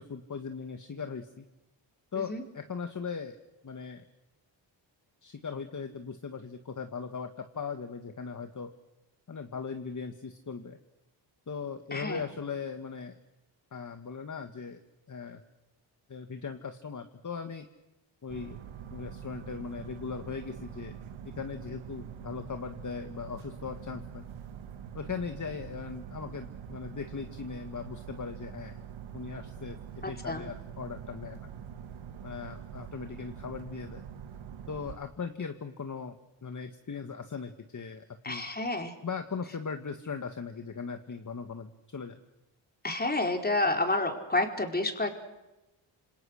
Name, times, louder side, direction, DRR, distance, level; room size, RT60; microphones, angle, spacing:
voice 1, 0.0-1.4 2.1-3.4 3.6-4.1 5.2-8.7 9.3-10.8 11.5-13.2 13.7-14.8 15.1-15.4 16.1-17.7 18.2-18.6 18.9-21.0 21.2-24.2 24.9-28.8 29.1-31.4 32.2-34.0 34.7-36.2 36.4-38.5 39.0-42.2, left 5 dB, 40° left, 7 dB, 1.8 m, -39 dB
voice 2, 11.9-12.2 30.0-30.5 38.2-38.9 42.8-45.1, left 2 dB, 20° left, 4 dB, 4.5 m, -29 dB
sound 1, 18.3-35.0, right 8 dB, 80° right, 1.6 m, -44 dB
27.5 x 27.0 x 6.6 m, 0.99 s
cardioid pair, 85°, 47 cm